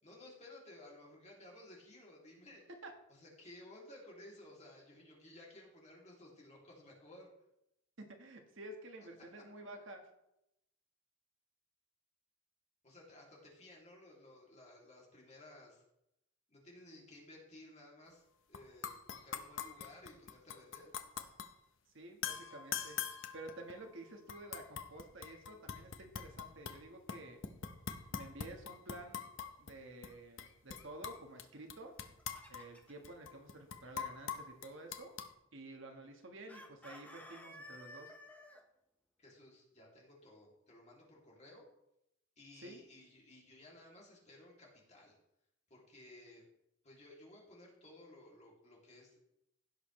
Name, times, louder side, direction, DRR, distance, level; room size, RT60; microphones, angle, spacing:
voice 1, 0.0-2.6 3.1-7.3 12.8-15.8 16.5-21.0 39.2-41.7 42.4-45.2 45.7-46.5 46.8-49.2, left 1 dB, 30° left, -2 dB, 2.7 m, -57 dB
voice 2, 8.2-10.0 21.9-27.4 28.1-29.2 29.6-31.9 32.5-35.1 35.5-38.1 42.6-42.8, right 2 dB, 60° right, 3 dB, 1.4 m, -51 dB
sound 1, 18.5-18.6 18.8-21.5 22.2-23.9 24.3-26.8 27.1-29.7 30.0-30.1 30.4-31.4 31.7-35.3, left 7 dB, 60° left, 0.8 m, -43 dB
Chicken rooster, 31.9-33.1 36.5-38.6, left 1 dB, 5° left, 0.9 m, -54 dB
16.0 x 6.5 x 3.2 m, 0.84 s
head